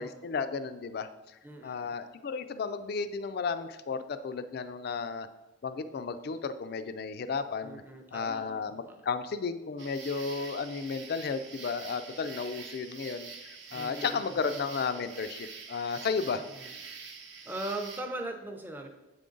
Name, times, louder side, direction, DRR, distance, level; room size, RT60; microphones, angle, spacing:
voice 1, 0.0-5.3 5.6-7.8 8.1-16.4, left 5 dB, 50° left, 11 dB, 0.3 m, -34 dB
voice 2, 1.4-1.9 7.6-9.0 13.7-14.4 16.4-16.7 17.4-18.9, right 1 dB, 10° right, 4 dB, 0.5 m, -40 dB
sound 1, 9.8-18.0, right 5 dB, 60° right, 0.7 m, -46 dB
7.3 x 3.7 x 3.8 m, 1.0 s
head